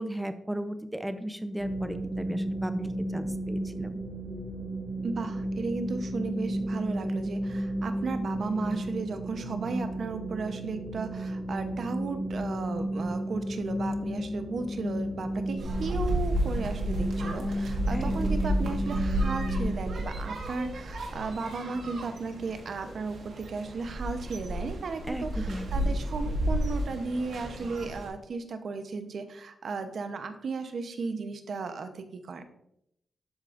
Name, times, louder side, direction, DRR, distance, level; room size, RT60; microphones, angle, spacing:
voice 1, 0.0-4.0 17.9-18.5 25.1-26.0, right 1 dB, 10° right, 9 dB, 0.7 m, -35 dB
sound 1, 1.6-19.7, right 1 dB, 45° left, 1.6 m, -33 dB
voice 2, 5.0-32.4, right 4 dB, 65° right, 8 dB, 0.8 m, -35 dB
sound 2, 15.6-28.1, equal, 80° right, 1.5 m, -32 dB
12.5 x 4.9 x 2.5 m, 0.77 s
cardioid pair, 85°, 0 cm